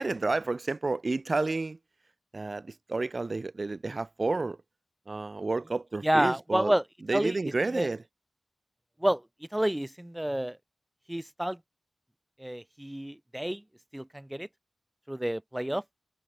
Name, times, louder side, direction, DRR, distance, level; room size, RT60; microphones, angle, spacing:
voice 1, 0.0-1.8 2.3-4.6 5.1-6.7 7.1-8.0, right 3 dB, 40° right, 5.7 m, -30 dB
voice 2, 6.0-6.8 7.1-7.9 9.0-9.2 9.5-10.6 11.1-11.6 12.4-13.6 13.9-14.5 15.1-15.8, right 1 dB, 10° right, 1.8 m, -29 dB
wide cardioid pair, 70°, 0 cm